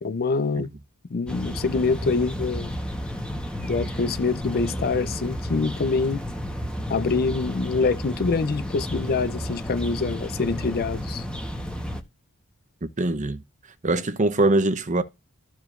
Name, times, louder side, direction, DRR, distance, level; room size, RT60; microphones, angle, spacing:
voice 1, 0.0-0.7 1.1-2.7 3.6-6.2 6.9-11.3, left 4 dB, 45° left, 0.5 m, -25 dB
sound 1, 1.3-12.0, equal, 5° left, 1.0 m, -32 dB
voice 2, 12.8-13.4 13.8-15.0, right 2 dB, 35° right, 0.8 m, -23 dB
14.0 x 4.9 x 2.5 m
head